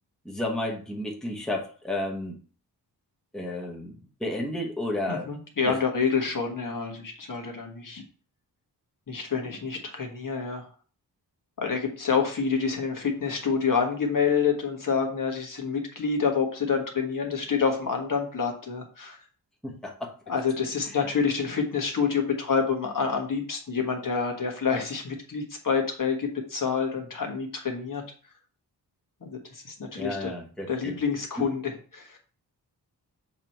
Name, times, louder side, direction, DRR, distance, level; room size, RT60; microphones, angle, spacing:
voice 1, 0.2-2.4 3.3-3.9 4.2-5.3 5.7-5.8 19.6-20.1 30.0-31.0 31.4-31.5, left 1 dB, ahead, 1.1 m, -32 dB
voice 2, 5.1-8.0 9.1-10.7 11.6-19.2 20.3-28.0 29.2-30.3 30.7-32.2, left 5 dB, 50° left, 1.5 m, -28 dB
7.3 x 3.0 x 4.4 m
wide cardioid pair, 120°, 40 cm